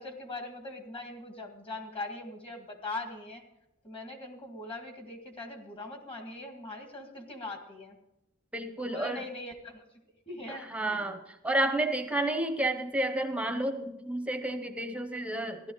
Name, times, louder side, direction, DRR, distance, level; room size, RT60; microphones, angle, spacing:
voice 1, 0.0-3.4 3.8-8.0 8.8-9.8 10.3-11.0, left 2 dB, 30° left, 4 dB, 1.9 m, -41 dB
voice 2, 8.5-9.2 10.5-15.7, right 1 dB, 5° right, 6 dB, 0.9 m, -31 dB
15.5 x 12.0 x 3.9 m, 0.90 s
head